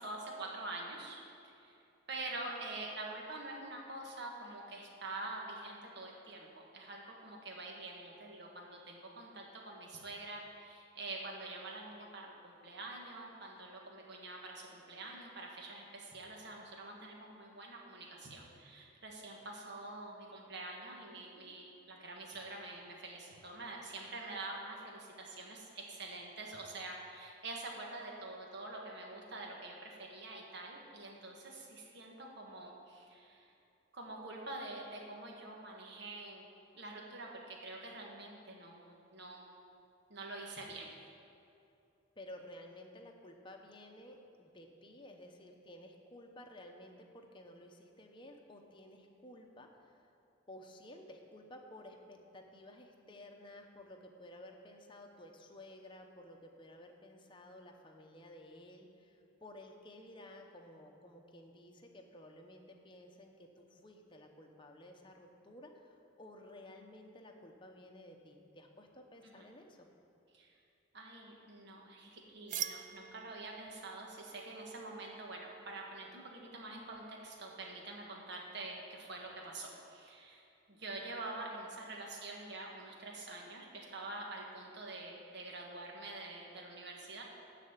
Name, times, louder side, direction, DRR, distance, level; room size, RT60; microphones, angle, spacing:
voice 1, 0.0-1.8 2.1-33.5 33.9-36.5 36.7-39.6 40.1-40.9 69.2-69.5 70.3-70.5 70.9-87.2, right 2 dB, 60° right, -1 dB, 1.5 m, -46 dB
voice 2, 42.2-50.1 50.5-69.9, left 1 dB, 25° left, 2 dB, 0.8 m, -54 dB
sound 1, 72.5-78.0, right 10 dB, 40° right, 0.3 m, -47 dB
12.5 x 4.2 x 8.1 m, 2.7 s
head